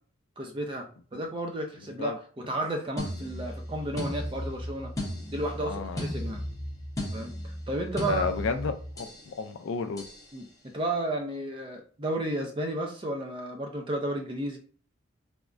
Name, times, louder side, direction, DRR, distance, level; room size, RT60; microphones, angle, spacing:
voice 1, 0.4-4.9 5.3-6.4 7.1-8.4 10.3-10.5 10.7-14.6, right 1 dB, 25° right, 0.5 m, -33 dB
sound 1, 3.0-9.3 10.0-10.3, left 1 dB, 15° left, 0.8 m, -35 dB
voice 2, 5.6-6.1 8.1-10.1, left 5 dB, 70° left, 0.3 m, -32 dB
3.4 x 2.0 x 2.4 m
head